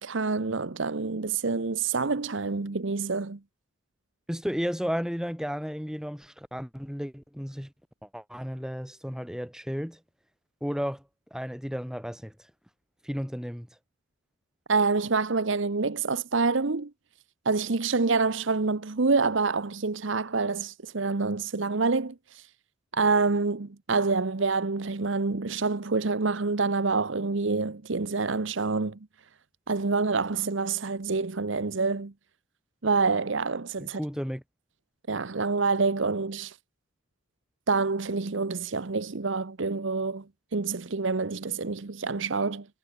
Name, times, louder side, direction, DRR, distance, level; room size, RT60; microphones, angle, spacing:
voice 1, 0.0-3.4 14.7-16.9 17.4-22.4 22.9-29.0 29.7-32.1 32.8-34.0 35.1-36.5 37.7-40.2 40.5-42.7, right 4 dB, 65° right, 0.9 m, -27 dB
voice 2, 4.3-7.7 8.0-10.0 10.6-11.0 11.3-12.3 13.0-13.7 33.8-34.4, equal, 5° right, 4.3 m, -33 dB
head